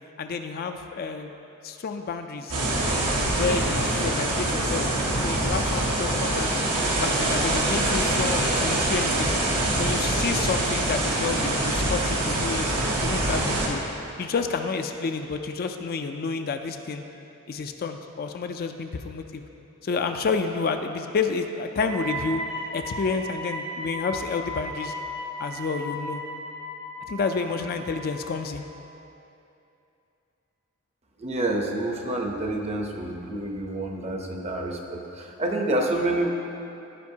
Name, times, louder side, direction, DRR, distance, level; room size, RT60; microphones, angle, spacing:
voice 1, 0.2-1.3 1.6-2.5 3.3-4.9 5.2-6.6 7.0-9.3 9.8-12.7 13.0-13.8 14.2-17.0 17.5-19.4 19.8-22.4 22.7-24.9 25.4-26.2 27.1-28.6, left 4 dB, 40° left, 6 dB, 0.4 m, -29 dB
sound 1, 2.5-13.7, right 1 dB, 85° right, 1.3 m, -24 dB
Wind instrument woodwind instrument, 21.9-28.3, equal, 65° right, 1.4 m, -35 dB
voice 2, 31.2-36.3, right 1 dB, 30° right, 2 dB, 0.7 m, -28 dB
15.0 x 5.2 x 2.8 m, 2.8 s
head